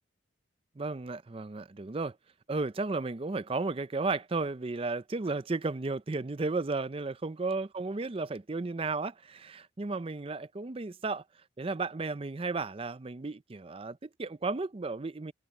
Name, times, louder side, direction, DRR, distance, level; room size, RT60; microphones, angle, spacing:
voice 1, 0.8-2.2 2.5-11.2 11.6-15.3, right 3 dB, 30° right, 0.5 m, -34 dB
head